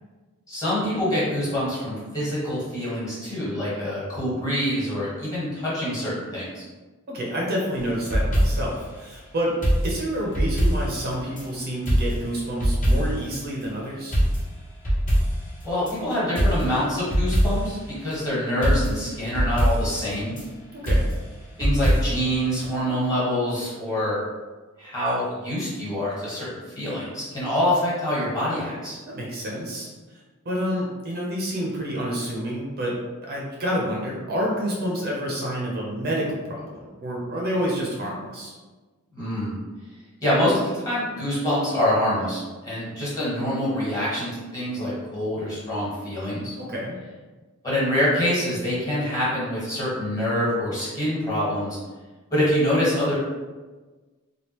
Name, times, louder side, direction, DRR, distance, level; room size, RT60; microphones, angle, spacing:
voice 1, 0.5-6.6 15.6-20.3 21.6-24.2 24.8-29.0 39.1-39.5 40.2-46.5 47.6-51.8 52.3-53.1, left 1 dB, 15° left, -9 dB, 1.4 m, -25 dB
voice 2, 7.1-9.6 9.8-14.2 20.7-21.1 29.1-29.9 30.4-38.5 46.6-47.0, equal, 45° right, -3 dB, 0.6 m, -28 dB
sound 1, 7.8-8.8 9.6-11.5 11.9-13.3 13.6-13.7 14.1-16.0 16.4-17.8 18.1-18.2 18.6-20.4 20.9-22.3 22.6-22.7, equal, 35° left, 1.1 m, -23 dB
3.4 x 2.3 x 2.9 m, 1.3 s
head